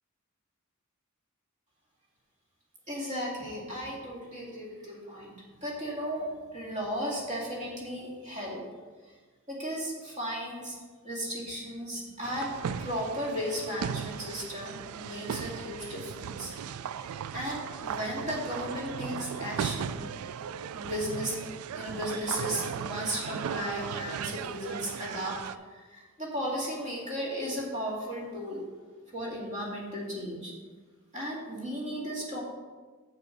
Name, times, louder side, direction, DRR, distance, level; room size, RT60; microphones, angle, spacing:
voice 1, 2.9-8.6 9.5-10.8 11.0-16.5 17.3-20.1 20.7-21.4 21.7-28.6 29.1-30.5 31.1-32.4, equal, 30° right, -3 dB, 2.0 m, -35 dB
sound 1, 12.2-25.5, right 7 dB, 75° right, 0.3 m, -37 dB
7.1 x 6.8 x 5.1 m, 1.4 s
head